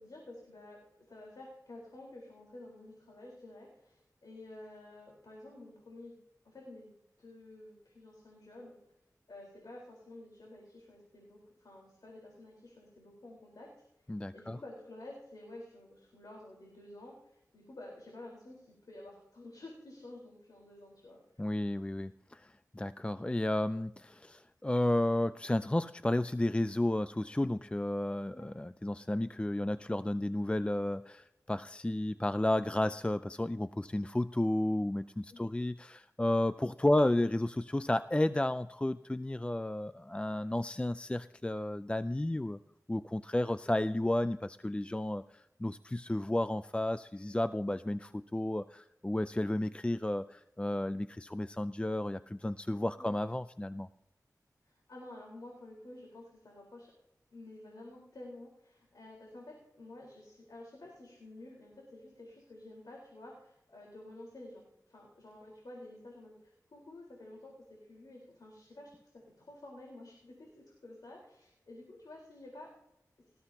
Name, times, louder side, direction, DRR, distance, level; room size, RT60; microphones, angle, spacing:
voice 1, 0.0-6.2 6.4-6.9 7.2-8.7 9.3-13.7 14.0-21.4 28.3-28.5 35.3-35.5 53.0-53.1 54.6-56.9 57.3-68.9 69.4-72.7, left 1 dB, 75° left, -2 dB, 4.2 m, -51 dB
voice 2, 14.1-14.6 21.4-42.6 42.9-53.9, left 1 dB, 15° left, 12 dB, 0.4 m, -32 dB
19.0 x 14.5 x 2.9 m, 0.87 s
wide cardioid pair, 55°, 7 cm